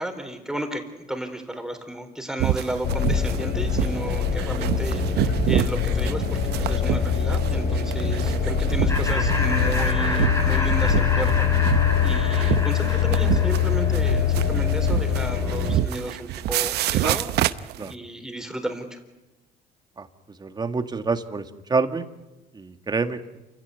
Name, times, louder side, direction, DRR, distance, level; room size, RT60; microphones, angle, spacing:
voice 1, 0.0-11.5 12.0-17.3 17.9-19.0, right 1 dB, 5° right, 5 dB, 4.0 m, -33 dB
sound 1, 2.4-17.9, right 14 dB, 75° right, 0.9 m, -28 dB
sound 2, 2.8-15.8, left 7 dB, 70° left, 6.7 m, -23 dB
Laughter, 8.9-14.2, left 1 dB, 15° left, 6.8 m, -30 dB
voice 2, 20.4-21.4 21.7-22.0 22.5-23.2, right 4 dB, 25° right, 8 dB, 1.9 m, -26 dB
28.5 x 16.5 x 9.4 m, 1.0 s
cardioid pair, 110°, 17 cm